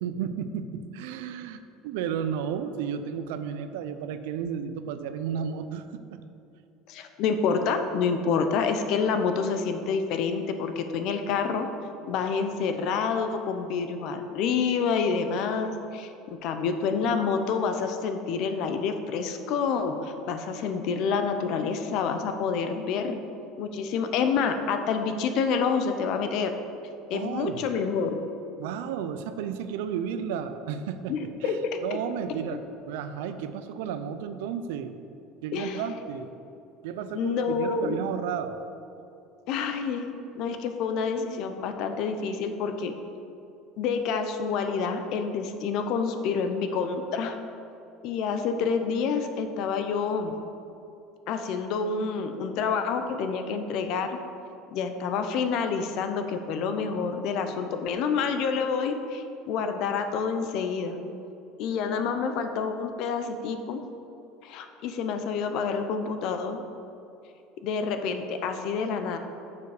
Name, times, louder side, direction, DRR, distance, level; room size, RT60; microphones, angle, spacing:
voice 1, 0.0-1.6 1.8-6.2 27.1-27.6 28.6-31.1 31.4-35.0 35.4-36.3 36.8-38.6, right 8 dB, 85° right, 10 dB, 0.5 m, -33 dB
voice 2, 6.9-11.7 12.1-23.2 23.6-26.5 27.1-28.2 31.1-31.6 35.5-35.8 37.1-38.0 39.5-42.9 43.8-47.4 48.0-50.4 51.3-54.2 54.7-61.0 61.6-63.8 64.4-66.6 67.6-69.2, left 5 dB, 55° left, 7 dB, 0.7 m, -28 dB
6.9 x 6.8 x 4.9 m, 2.7 s
cardioid pair, 155°, 0 cm